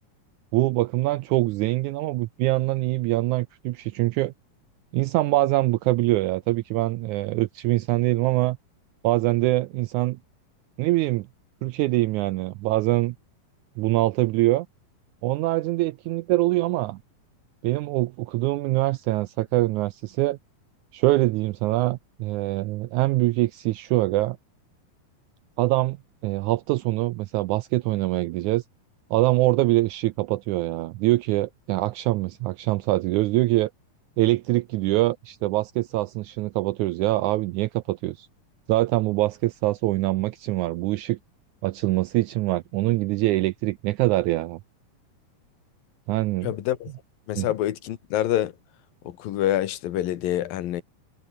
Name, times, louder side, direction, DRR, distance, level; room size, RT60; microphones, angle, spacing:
voice 1, 0.5-4.3 4.9-8.6 9.0-10.2 10.8-11.3 11.6-13.1 13.8-14.7 15.2-17.0 17.6-20.4 20.9-24.4 25.6-26.0 26.2-28.6 29.1-33.7 34.2-38.3 38.7-41.2 41.6-44.6 46.1-46.5 47.3-47.5, right 18 dB, 80° right, 1.7 m, -24 dB
voice 2, 46.4-46.9 47.3-48.5 49.0-50.8, left 12 dB, 85° left, 3.2 m, -26 dB
omnidirectional pair, 4.0 m